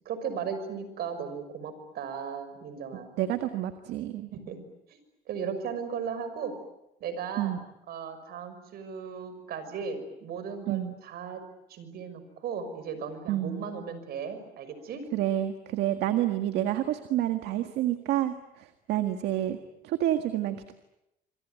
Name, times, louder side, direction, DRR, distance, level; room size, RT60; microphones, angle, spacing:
voice 1, 0.1-3.2 4.3-4.6 4.9-5.0 5.3-6.5 7.0-7.6 7.9-11.4 11.7-15.1, right 6 dB, 70° right, 10 dB, 6.0 m, -36 dB
voice 2, 2.9-4.3 7.4-7.6 10.7-10.9 13.3-13.6 15.1-20.7, right 12 dB, 85° right, 8 dB, 1.7 m, -29 dB
26.5 x 24.0 x 9.2 m, 0.88 s
cardioid pair, 110°, 17 cm